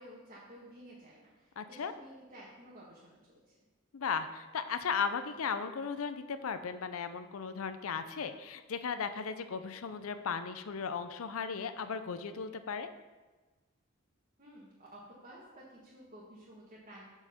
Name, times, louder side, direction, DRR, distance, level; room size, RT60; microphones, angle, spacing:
voice 1, 0.0-3.6 14.4-17.0, equal, 40° right, -7 dB, 1.5 m, -53 dB
voice 2, 1.6-1.9 3.9-12.9, left 6 dB, 75° left, 11 dB, 0.5 m, -36 dB
6.2 x 5.6 x 6.6 m, 1.2 s
head